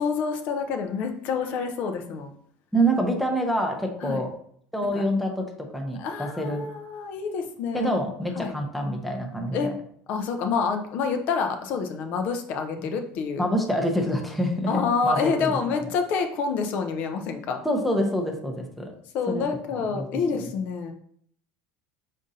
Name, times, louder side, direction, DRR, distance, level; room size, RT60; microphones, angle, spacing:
voice 1, 0.0-2.3 4.0-4.2 4.9-5.0 6.0-8.0 8.4-8.5 9.5-9.7 10.1-13.5 14.7-17.6 19.1-20.9, left 5 dB, 50° left, 5 dB, 0.5 m, -27 dB
voice 2, 2.7-4.3 4.7-5.5 5.7-6.7 7.7-9.7 12.8-12.9 13.4-15.9 17.6-18.9 19.3-19.4 19.7-20.1, equal, ahead, 0 dB, 0.6 m, -26 dB
5.2 x 3.7 x 2.6 m, 0.63 s
cardioid pair, 150°, 3 cm